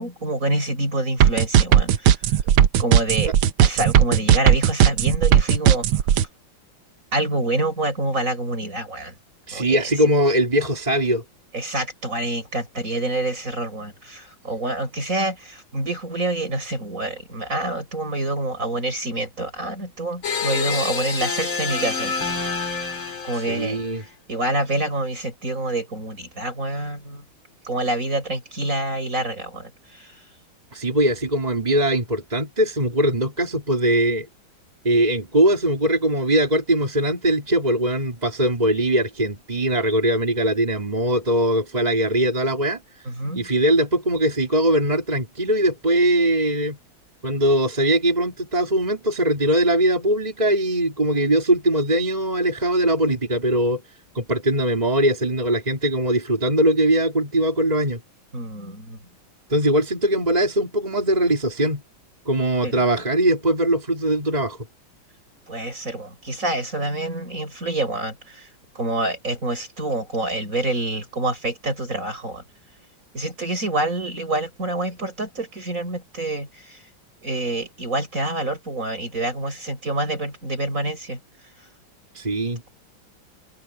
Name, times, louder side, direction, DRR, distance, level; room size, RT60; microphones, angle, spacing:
voice 1, 0.0-2.5 2.8-3.3 3.6-5.9 7.1-9.1 9.5-9.8 11.5-23.0 23.2-27.2 27.6-30.2 43.1-43.5 58.3-59.0 62.6-62.9 65.5-68.5 68.7-72.4 73.1-76.8 77.2-81.2, right 2 dB, 40° right, 7.7 m, -27 dB
sound 1, 1.2-6.2, right 9 dB, 85° right, 1.7 m, -15 dB
voice 2, 9.5-11.2 23.3-24.0 30.7-34.3 34.8-43.1 43.3-46.8 47.2-53.8 54.1-58.0 59.5-61.8 62.3-64.6 82.1-82.6, right 1 dB, 20° right, 3.2 m, -21 dB
sound 2, 20.2-23.9, left 5 dB, 85° left, 4.3 m, -27 dB
omnidirectional pair, 2.2 m